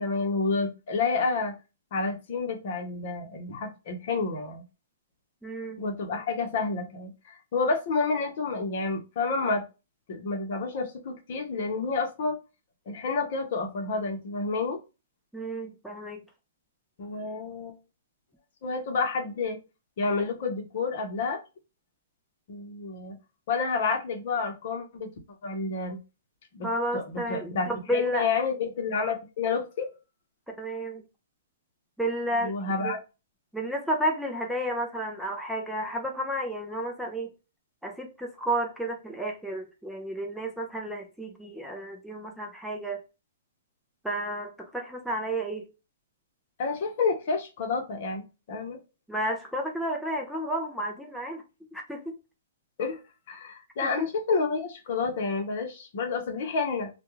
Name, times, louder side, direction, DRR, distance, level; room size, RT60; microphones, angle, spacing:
voice 1, 0.0-1.6 1.9-4.6 5.8-9.6 10.1-12.4 12.9-14.8 17.0-17.8 18.6-19.6 20.0-21.4 22.5-23.2 23.5-25.1 25.4-26.0 26.5-26.7 26.9-29.9 32.4-33.0 46.6-48.8 52.8-53.0 53.3-56.9, left 4 dB, 55° left, 0.8 m, -29 dB
voice 2, 5.4-5.8 15.3-16.2 26.6-28.3 30.5-31.0 32.0-32.9 33.5-37.3 37.8-43.0 44.0-45.7 49.1-51.4 51.7-52.1 53.8-54.1, right 1 dB, ahead, 0.5 m, -32 dB
2.3 x 2.2 x 2.9 m
hypercardioid pair, 135°, 0 cm